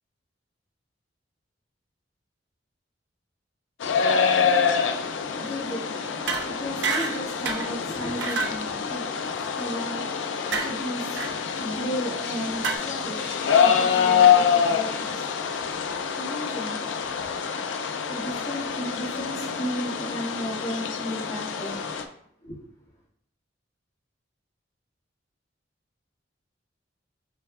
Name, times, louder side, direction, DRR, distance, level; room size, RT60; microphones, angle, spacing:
sound 1, 3.8-22.0, left 7 dB, 90° left, 0.4 m, -26 dB
voice 1, 5.3-17.0 18.0-21.8 22.4-22.6, equal, 40° left, 1.9 m, -35 dB
sound 2, 6.3-6.5 6.8-7.2 7.5-7.7 8.2-8.6 10.5-10.7 11.1-11.3 12.6-12.8, right 4 dB, 65° right, 0.6 m, -27 dB
6.2 x 3.4 x 2.4 m
head